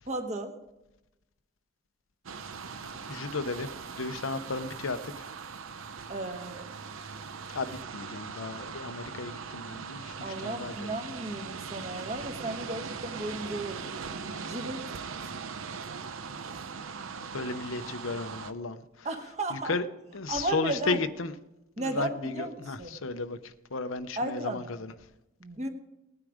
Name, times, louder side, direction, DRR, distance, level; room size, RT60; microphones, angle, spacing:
voice 1, 0.1-0.5 6.1-6.7 10.2-13.9 14.4-14.8 19.0-19.8 20.3-21.0 21.8-22.9 24.2-24.6 25.4-25.7, right 2 dB, 35° right, 5 dB, 1.4 m, -34 dB
sound 1, 2.3-18.5, right 5 dB, 90° right, 0.7 m, -40 dB
voice 2, 3.1-3.7 4.0-5.1 7.5-10.9 17.3-18.8 19.5-19.8 20.1-21.3 21.8-24.9, left 4 dB, 85° left, 10 dB, 0.8 m, -34 dB
18.0 x 9.7 x 5.0 m, 0.96 s
head